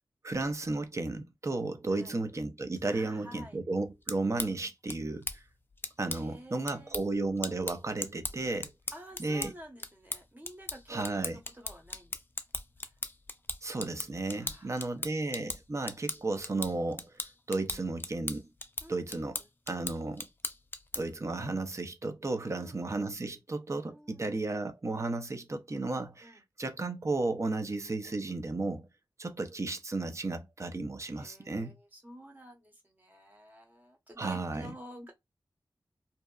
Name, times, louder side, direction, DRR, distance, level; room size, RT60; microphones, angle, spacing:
voice 1, 0.2-5.4 6.0-8.7 9.2-9.5 10.9-11.4 13.6-17.2 17.5-18.5 18.9-19.4 19.7-20.3 20.9-28.9 29.2-31.7 34.2-34.7, right 2 dB, 35° right, 0.5 m, -34 dB
voice 2, 2.9-3.6 6.1-7.0 8.9-12.1 14.4-15.1 18.8-19.5 22.4-22.8 23.8-24.3 26.2-26.4 31.1-35.1, equal, 20° right, 0.9 m, -50 dB
sound 1, 3.9-21.2, left 2 dB, 25° left, 0.4 m, -40 dB
2.7 x 2.0 x 2.3 m
wide cardioid pair, 60°, 8 cm